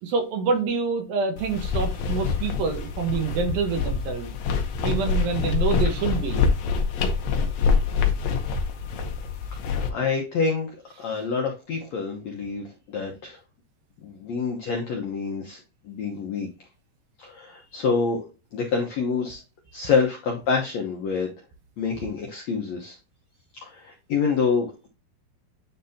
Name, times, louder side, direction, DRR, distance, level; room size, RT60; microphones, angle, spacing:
voice 1, 0.0-4.3 4.8-6.4, right 5 dB, 70° right, 2.7 m, -26 dB
sound 1, 1.4-9.9, left 5 dB, 90° left, 1.5 m, -25 dB
voice 2, 9.9-10.7 11.0-13.4 14.0-15.6 15.8-16.5 17.2-18.2 18.5-19.4 19.7-21.3 21.8-23.0 23.6-24.9, left 5 dB, 75° left, 1.6 m, -27 dB
9.8 x 4.0 x 2.7 m
omnidirectional pair, 4.6 m